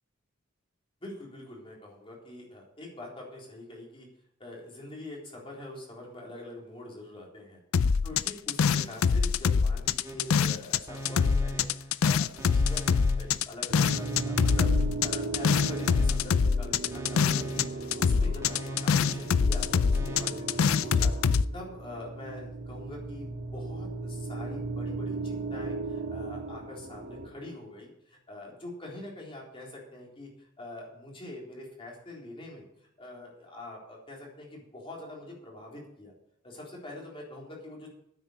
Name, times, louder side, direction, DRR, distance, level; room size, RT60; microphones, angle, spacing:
voice 1, 1.0-4.1 4.4-14.7 15.0-32.6 33.0-36.1 36.4-37.9, left 1 dB, 25° left, -3 dB, 3.9 m, -44 dB
sound 1, 7.7-10.8 11.1-17.7 17.9-21.4, left 6 dB, 85° left, 0.4 m, -24 dB
sound 2, 10.0-10.5 10.9-12.0 12.4-13.5 13.9-15.0 15.4-16.5 16.9-18.0 18.4-19.5 19.9-20.3, right 1 dB, 15° right, 1.5 m, -39 dB
sound 3, 13.7-27.3, right 3 dB, 50° right, 1.7 m, -37 dB
9.7 x 8.4 x 7.9 m, 0.75 s
head